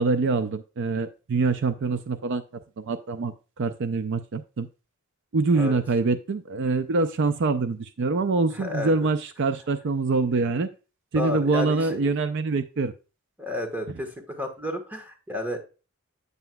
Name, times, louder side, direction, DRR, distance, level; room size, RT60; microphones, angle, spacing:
voice 1, 0.0-2.4 2.8-4.7 5.3-10.7 11.1-12.9, right 3 dB, 60° right, 10 dB, 0.5 m, -25 dB
voice 2, 8.5-8.9 11.2-12.2 13.4-15.6, left 1 dB, 10° right, 5 dB, 1.3 m, -31 dB
8.0 x 7.7 x 2.2 m, 0.33 s
head